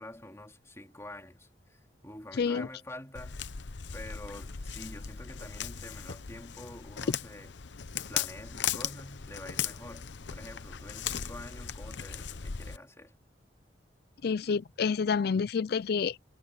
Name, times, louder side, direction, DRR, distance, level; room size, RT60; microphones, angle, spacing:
voice 1, 0.0-7.5 8.1-13.1, left 1 dB, 15° left, 3.2 m, -47 dB
voice 2, 2.3-2.7 14.2-16.2, left 5 dB, 60° left, 0.4 m, -28 dB
Walk footsteps, 3.1-12.8, left 8 dB, 75° left, 0.8 m, -38 dB
head